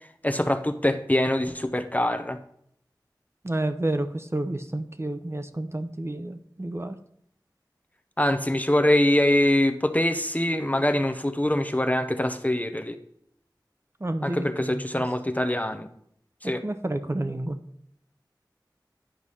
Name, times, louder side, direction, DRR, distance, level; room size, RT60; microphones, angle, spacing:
voice 1, 0.2-2.4 8.2-13.0 14.2-15.9 16.4-16.6, left 1 dB, 20° left, 8 dB, 0.7 m, -24 dB
voice 2, 3.4-7.0 14.0-15.1 16.4-17.6, right 1 dB, 35° right, 8 dB, 0.7 m, -30 dB
10.0 x 4.7 x 5.5 m, 0.69 s
wide cardioid pair, 45°, 8 cm